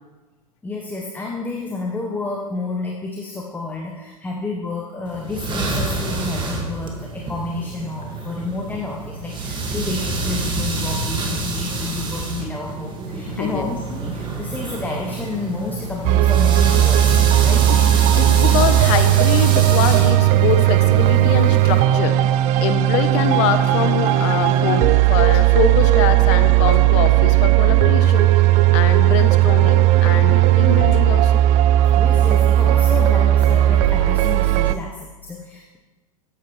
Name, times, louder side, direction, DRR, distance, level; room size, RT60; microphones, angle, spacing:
voice 1, 0.6-17.6 32.0-35.8, left 3 dB, 10° left, 1 dB, 1.0 m, -30 dB
sound 1, 5.1-21.8, right 3 dB, 25° right, 1.8 m, -27 dB
voice 2, 13.3-13.7 17.7-17.8 18.2-22.2 22.6-28.3 28.7-31.4, left 9 dB, 55° left, 10 dB, 0.9 m, -24 dB
sound 2, 16.0-34.7, right 14 dB, 40° right, 0.4 m, -16 dB
13.0 x 9.3 x 3.2 m, 1.2 s
hypercardioid pair, 100°, 19 cm